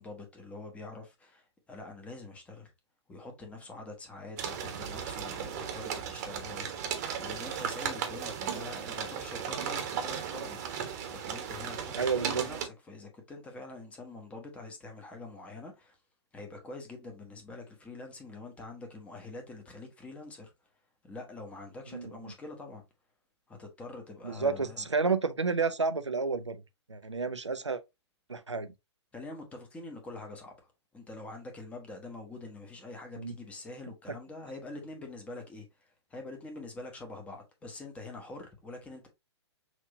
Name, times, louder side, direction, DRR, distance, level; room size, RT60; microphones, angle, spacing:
voice 1, 0.0-2.7 3.1-10.6 10.8-16.0 16.3-20.5 21.0-22.8 23.5-24.9 29.1-39.1, left 2 dB, 10° left, 1.0 m, -45 dB
sound 1, 4.4-12.7, right 8 dB, 35° right, 1.1 m, -36 dB
voice 2, 11.9-12.4 21.9-22.3 24.2-26.6 26.9-27.8 28.3-28.7 33.2-33.3, right 4 dB, 80° right, 0.7 m, -30 dB
6.0 x 2.7 x 2.8 m
figure-of-eight pair, 115°, 15 cm